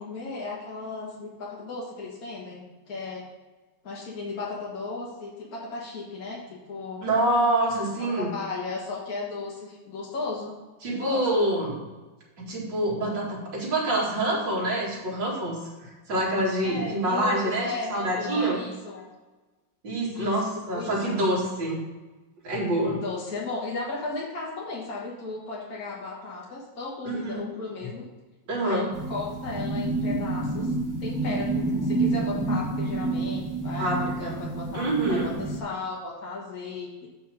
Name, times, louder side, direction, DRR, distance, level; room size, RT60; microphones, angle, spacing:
voice 1, 0.0-3.3 3.8-7.1 8.2-10.5 10.9-11.3 16.6-19.0 20.2-20.4 20.7-21.1 22.9-28.1 28.6-30.7 31.0-37.1, left 3 dB, 50° left, -5 dB, 2.0 m, -35 dB
voice 2, 7.0-8.3 10.8-11.8 12.4-18.6 19.8-21.8 22.4-23.0 27.0-27.4 28.5-28.9 33.8-34.4 34.7-35.3, right 1 dB, 70° right, -3 dB, 2.9 m, -26 dB
sound 1, 28.9-35.6, right 2 dB, 15° right, 0.7 m, -28 dB
7.6 x 5.8 x 5.1 m, 1.2 s
omnidirectional pair, 2.1 m